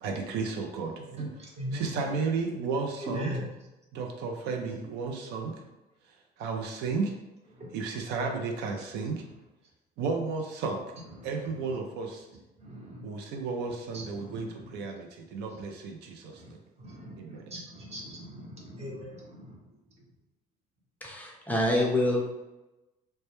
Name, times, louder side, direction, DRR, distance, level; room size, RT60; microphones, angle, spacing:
voice 1, 0.0-1.3 1.7-3.4 3.9-5.5 6.4-7.1 7.7-9.2 10.0-10.8 11.2-12.2 13.0-14.5 14.7-16.3 17.2-17.4, right 4 dB, 85° right, 2 dB, 0.4 m, -33 dB
voice 2, 1.6-1.9 3.0-3.4 12.7-12.8 13.9-14.0 14.3-14.4 16.9-17.0 17.5-18.5 18.8-19.1, equal, 40° right, -2 dB, 0.8 m, -37 dB
voice 3, 21.0-22.3, left 1 dB, 10° left, -2 dB, 0.4 m, -26 dB
2.1 x 2.1 x 2.9 m, 1.0 s
cardioid pair, 110°, 17 cm